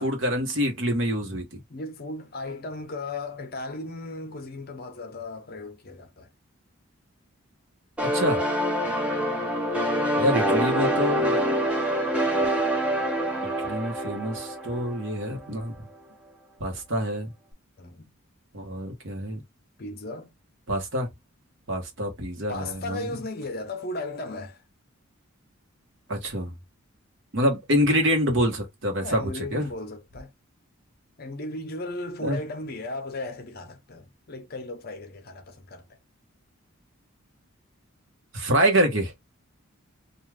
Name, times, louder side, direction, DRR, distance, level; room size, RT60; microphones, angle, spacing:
voice 1, 0.0-1.6 8.0-8.4 10.2-11.4 13.6-15.7 16.6-17.3 18.5-19.4 20.7-21.1 21.7-23.1 26.1-26.5 27.3-29.7 32.2-32.4 38.3-39.1, equal, 55° right, 1.0 m, -26 dB
voice 2, 1.7-6.3 17.8-18.1 19.8-20.3 22.5-24.6 29.0-30.3 31.2-35.9, left 2 dB, 45° left, 0.6 m, -36 dB
sound 1, 8.0-15.5, equal, 5° right, 0.5 m, -26 dB
2.4 x 2.3 x 3.2 m
head